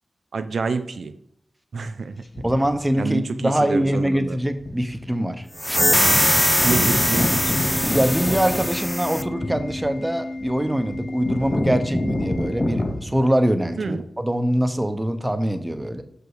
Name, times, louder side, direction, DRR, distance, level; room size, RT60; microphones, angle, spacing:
voice 1, 0.3-1.1 1.7-2.2 3.0-4.4 6.6-7.5 13.8-14.0, right 4 dB, 80° right, 9 dB, 0.4 m, -27 dB
sound 1, 2.3-2.8 3.9-4.0 4.6-4.9 5.2-5.3 5.6-13.0, left 1 dB, 40° left, 2.5 m, -27 dB
voice 2, 2.4-5.5 7.9-16.0, right 1 dB, 15° right, 8 dB, 0.9 m, -23 dB
sound 2, 5.6-9.3, equal, 5° left, 0.4 m, -21 dB
Organ, 7.1-13.1, left 2 dB, 55° left, 0.7 m, -34 dB
6.1 x 5.0 x 4.7 m, 0.76 s
cardioid pair, 50°, 0 cm